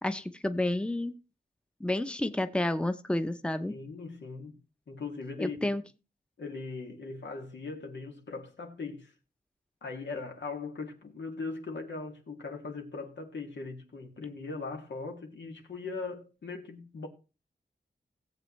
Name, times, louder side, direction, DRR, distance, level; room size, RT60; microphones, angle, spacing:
voice 1, 0.0-1.1 1.8-3.7 5.4-5.8, left 1 dB, 5° left, 0.7 m, -30 dB
voice 2, 3.7-4.5 4.9-5.7 6.4-9.1 9.8-17.1, left 4 dB, 90° left, 2.2 m, -39 dB
17.5 x 7.9 x 3.2 m
wide cardioid pair, 90°, 18 cm